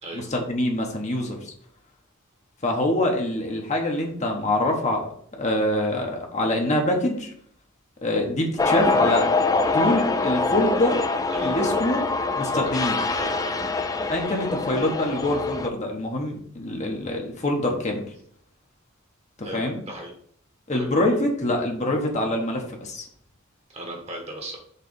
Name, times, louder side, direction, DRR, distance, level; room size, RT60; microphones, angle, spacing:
voice 1, 0.1-1.5 2.6-7.3 8.0-9.3 9.7-11.1 11.4-12.0 12.3-13.0 14.1-18.1 19.5-19.8 20.7-23.0, left 1 dB, 35° left, 1 dB, 1.1 m, -25 dB
sound 1, 8.6-15.7, left 3 dB, 15° left, 0.4 m, -24 dB
voice 2, 11.3-11.9 12.6-12.7 13.1-13.6 19.4-20.1 20.7-20.9 23.7-24.6, equal, 30° right, 1 dB, 1.5 m, -35 dB
6.6 x 3.3 x 5.2 m, 0.62 s
head